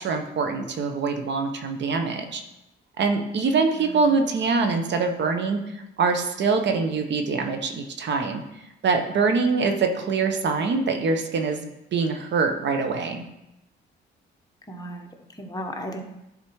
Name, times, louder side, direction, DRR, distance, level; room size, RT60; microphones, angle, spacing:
voice 1, 0.0-2.4 3.0-5.6 6.0-8.4 8.8-13.2, right 4 dB, 65° right, 5 dB, 1.0 m, -24 dB
voice 2, 3.7-4.3 9.6-9.7 14.7-16.0, equal, 20° left, 2 dB, 1.2 m, -36 dB
10.5 x 4.2 x 4.7 m, 0.91 s
cardioid pair, 90°, 20 cm